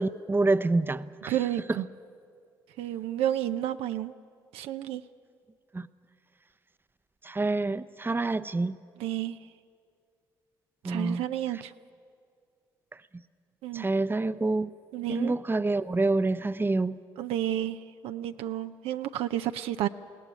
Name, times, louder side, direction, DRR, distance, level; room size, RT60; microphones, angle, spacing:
voice 1, 0.0-1.4 1.7-1.8 5.7-5.9 7.2-8.8 10.8-11.2 13.7-14.7 15.1-17.0, right 3 dB, 20° right, 14 dB, 0.8 m, -27 dB
voice 2, 1.3-1.9 2.8-4.1 4.5-5.0 9.0-9.4 10.8-11.7 13.6-13.9 14.9-15.3 17.2-17.8 18.0-19.9, right 12 dB, 75° right, 9 dB, 0.6 m, -31 dB
21.5 x 17.0 x 9.6 m, 2.3 s
hypercardioid pair, 50°, 10 cm